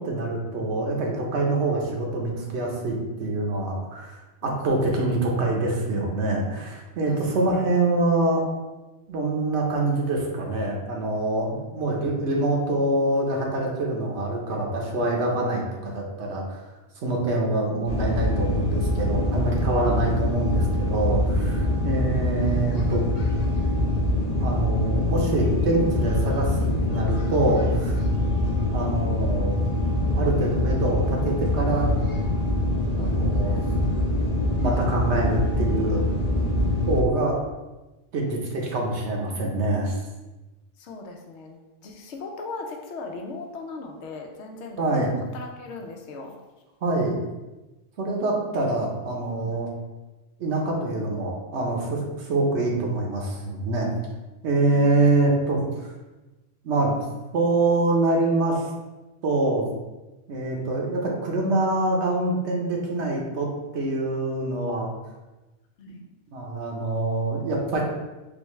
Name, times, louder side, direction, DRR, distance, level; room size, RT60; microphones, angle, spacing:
voice 1, 0.0-4.2 4.4-8.4 9.1-16.6 17.0-23.0 24.4-26.6 26.8-28.0 28.7-29.6 30.2-31.9 32.9-33.6 34.6-36.1 36.9-37.4 38.1-40.0 44.8-45.1 46.8-47.1 48.0-49.7 50.4-53.9 54.4-55.6 56.6-56.9 57.3-58.6 59.2-59.7 60.3-63.5 63.7-64.9 65.9-66.0 66.3-67.8, right 2 dB, 80° right, -1 dB, 1.1 m, -25 dB
voice 2, 4.4-4.8 7.1-7.5 21.5-22.2 28.1-28.4 40.8-46.3 49.4-49.6 54.6-55.1 65.8-66.0, left 3 dB, 80° left, 2 dB, 1.0 m, -39 dB
sound 1, 17.9-37.0, left 1 dB, 45° left, 0.6 m, -24 dB
4.0 x 3.4 x 3.1 m, 1.1 s
omnidirectional pair, 1.2 m